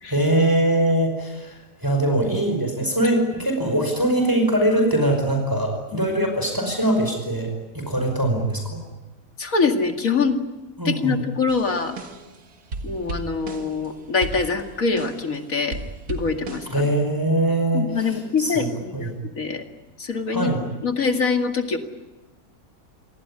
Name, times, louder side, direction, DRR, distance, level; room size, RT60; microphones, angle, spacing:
voice 1, 0.1-8.8 10.8-11.2 16.7-18.7 18.9-19.1 20.3-20.6, right 1 dB, 15° right, 3 dB, 5.3 m, -22 dB
voice 2, 9.4-10.4 10.8-11.9 12.8-15.8 16.1-16.9 17.7-19.6 20.0-20.5 20.8-21.8, left 5 dB, 65° left, 5 dB, 2.7 m, -24 dB
sound 1, 11.5-12.4 12.7-13.9 14.2-15.4 15.7-16.9, right 3 dB, 85° right, 2.4 m, -35 dB
27.5 x 19.5 x 9.9 m, 1.1 s
omnidirectional pair, 1.5 m